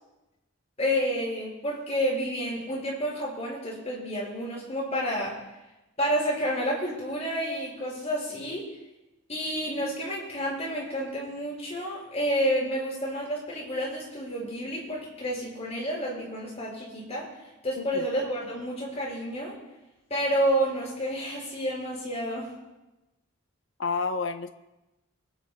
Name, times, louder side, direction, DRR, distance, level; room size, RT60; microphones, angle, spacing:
voice 1, 0.8-5.3 6.0-8.6 9.3-17.2 17.6-19.5 20.1-22.5, equal, 35° left, -4 dB, 5.6 m, -29 dB
voice 2, 17.8-18.1 23.8-24.5, left 4 dB, 65° left, 8 dB, 0.8 m, -30 dB
29.0 x 10.0 x 2.3 m, 1.0 s
head